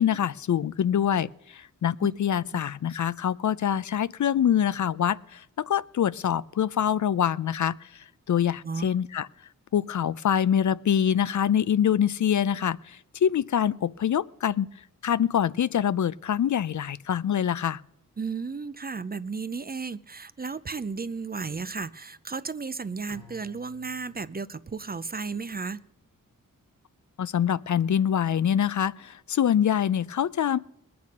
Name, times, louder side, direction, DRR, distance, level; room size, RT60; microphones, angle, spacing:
voice 1, 0.0-9.3 9.7-14.7 15.0-17.8 27.2-30.6, left 9 dB, 60° left, 18 dB, 0.4 m, -25 dB
voice 2, 18.2-25.8, right 4 dB, 30° right, 16 dB, 0.5 m, -34 dB
Bowed string instrument, 23.1-26.1, left 3 dB, 90° left, 1.9 m, -55 dB
20.5 x 8.6 x 5.3 m, 0.77 s
cardioid pair, 60°, 33 cm